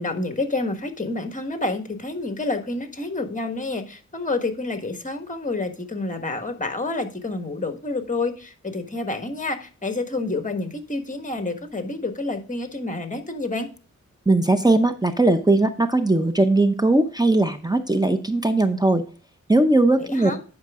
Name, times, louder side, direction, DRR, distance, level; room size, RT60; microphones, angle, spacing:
voice 1, 0.0-13.7 20.0-20.4, left 2 dB, 25° left, 7 dB, 1.5 m, -28 dB
voice 2, 14.3-19.0 19.5-20.3, right 2 dB, 15° right, 9 dB, 0.7 m, -19 dB
10.5 x 5.2 x 3.7 m, 0.38 s
cardioid pair, 65°, 31 cm